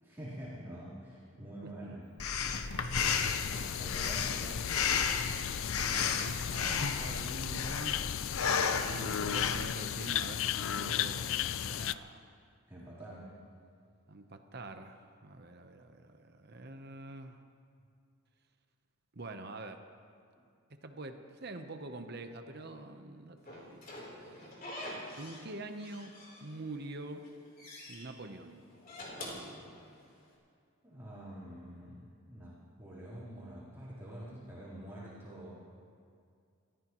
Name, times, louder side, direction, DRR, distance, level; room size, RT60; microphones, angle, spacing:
voice 1, 0.0-2.1 3.5-4.7 12.7-13.3 20.3-20.4 30.8-35.6, right 1 dB, 10° right, -11 dB, 3.8 m, -46 dB
Breathing, 2.2-9.8, left 6 dB, 85° left, 0.9 m, -33 dB
sound 1, 3.0-11.9, left 10 dB, 65° left, 0.4 m, -35 dB
voice 2, 5.8-8.0 8.8-12.3 14.1-17.4 19.1-19.8 20.8-24.7 25.2-26.1 26.4-27.3 27.9-28.6, right 2 dB, 50° right, 6 dB, 0.9 m, -45 dB
Slam / Squeak, 23.5-25.5 25.8-26.8 27.1-28.0 28.7-30.2, left 1 dB, 40° left, 3.7 m, -45 dB
29.5 x 15.0 x 3.1 m, 2.3 s
head